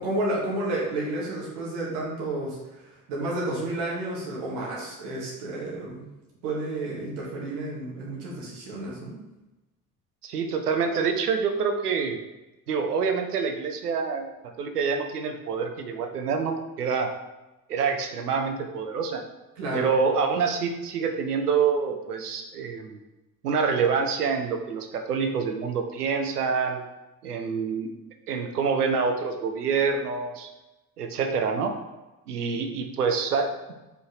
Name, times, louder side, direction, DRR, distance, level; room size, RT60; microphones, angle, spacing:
voice 1, 0.0-2.6 2.8-6.1 6.4-9.2 19.6-19.9, right 2 dB, 65° right, -4 dB, 2.2 m, -31 dB
voice 2, 10.2-12.2 12.7-14.3 14.6-17.1 17.7-19.2 19.7-23.0 23.4-26.8 27.2-27.9 28.3-30.5 31.0-31.7 32.3-33.7, right 5 dB, 80° right, 5 dB, 0.7 m, -26 dB
5.1 x 4.4 x 4.6 m, 1.0 s
figure-of-eight pair, 50°, 45 cm